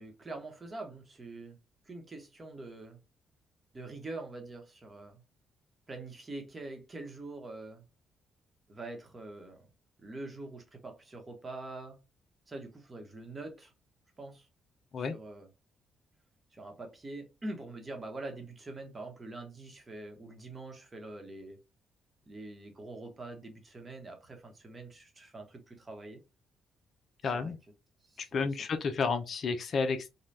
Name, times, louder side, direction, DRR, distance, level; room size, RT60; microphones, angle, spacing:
voice 1, 0.0-1.6 1.9-3.0 3.7-5.2 5.9-7.8 8.7-9.7 10.0-12.0 12.5-13.7 14.2-14.5 15.0-15.5 16.5-21.6 22.3-26.2 27.3-27.5 28.1-28.5, right 2 dB, 30° right, 0.9 m, -44 dB
voice 2, 27.2-27.6 28.2-30.1, left 4 dB, 55° left, 0.5 m, -31 dB
3.2 x 2.2 x 2.7 m
cardioid pair, 90°, 0 cm